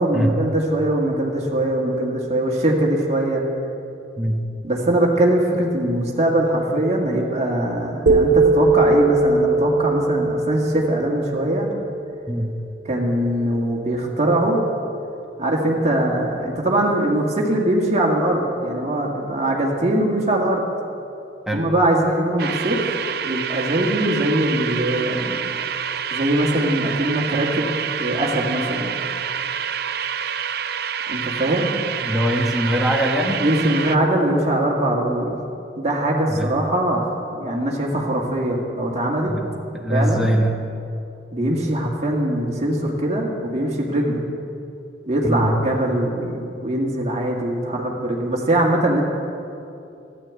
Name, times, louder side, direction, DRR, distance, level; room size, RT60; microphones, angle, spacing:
voice 1, 0.0-3.4 4.6-11.7 12.9-14.6 15.4-20.6 21.5-22.8 23.2-25.4 26.1-27.7 28.0-28.9 31.1-31.7 33.4-35.4 35.8-39.3 39.9-40.3 41.3-44.2 45.1-49.0, right 1 dB, 35° right, -2 dB, 1.9 m, -21 dB
sound 1, 8.1-12.1, right 3 dB, 85° right, 1.4 m, -19 dB
sound 2, 22.4-34.0, right 7 dB, 55° right, 0.6 m, -27 dB
voice 2, 32.0-33.4 36.3-36.5 39.3-40.6 45.2-45.5, equal, ahead, -1 dB, 1.3 m, -22 dB
13.5 x 11.0 x 8.3 m, 2.7 s
head